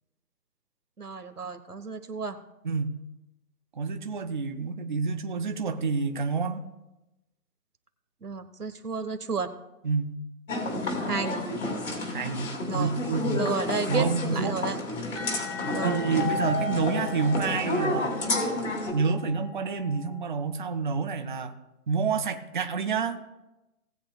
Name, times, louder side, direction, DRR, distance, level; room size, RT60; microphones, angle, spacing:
voice 1, 1.0-2.4 8.2-9.5 11.0-11.4 12.7-12.9 13.4-14.1 14.3-14.8 15.7-16.1, right 4 dB, 85° right, 9 dB, 1.4 m, -32 dB
voice 2, 2.6-3.0 3.8-6.6 9.8-10.2 12.1-13.5 13.9-14.6 15.8-18.1 18.9-21.5 21.9-23.2, right 5 dB, 35° right, 7 dB, 0.7 m, -28 dB
sound 1, 10.5-18.9, left 2 dB, 60° left, 2.9 m, -30 dB
sound 2, 15.1-20.7, left 6 dB, 15° left, 1.2 m, -42 dB
18.5 x 8.6 x 2.3 m, 0.97 s
figure-of-eight pair, 145°, 45 cm